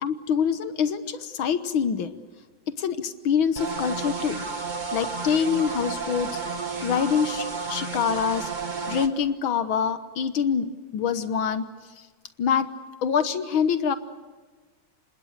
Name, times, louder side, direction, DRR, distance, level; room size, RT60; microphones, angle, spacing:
voice 1, 0.0-2.1 2.7-4.4 4.9-6.4 6.8-8.5 8.9-11.7 12.4-12.7 13.0-14.0, left 7 dB, 75° left, 11 dB, 1.9 m, -25 dB
sound 1, 3.6-9.1, right 4 dB, 25° right, 1.5 m, -32 dB
29.0 x 26.0 x 6.6 m, 1.3 s
omnidirectional pair, 2.2 m